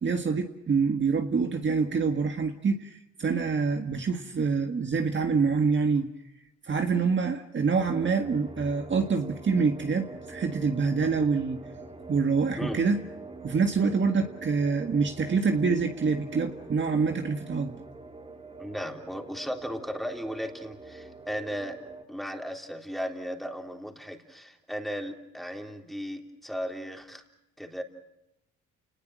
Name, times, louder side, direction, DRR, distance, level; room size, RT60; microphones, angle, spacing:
voice 1, 0.0-6.1 6.7-11.6 12.1-13.0 13.4-17.8, right 5 dB, 40° right, 5 dB, 1.7 m, -26 dB
sound 1, 7.8-22.0, right 3 dB, 20° right, 3.2 m, -44 dB
voice 2, 18.6-21.8 22.1-27.2 27.6-27.8, equal, ahead, 3 dB, 3.6 m, -36 dB
29.5 x 20.0 x 6.4 m, 0.83 s
cardioid pair, 90°, 30 cm